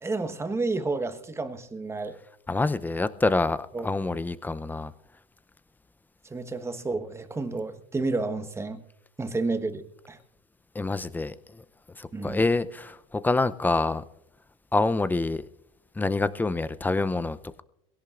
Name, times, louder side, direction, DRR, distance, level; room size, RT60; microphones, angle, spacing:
voice 1, 0.0-2.2 3.7-3.9 6.3-8.8 9.2-10.2 12.1-12.4, right 3 dB, 15° right, 1.2 m, -30 dB
voice 2, 2.5-3.6 3.8-4.9 10.7-11.3 12.0-14.0 14.7-15.4 16.0-17.6, left 3 dB, 10° left, 0.6 m, -26 dB
22.0 x 17.0 x 2.5 m
supercardioid pair, 100°, 18 cm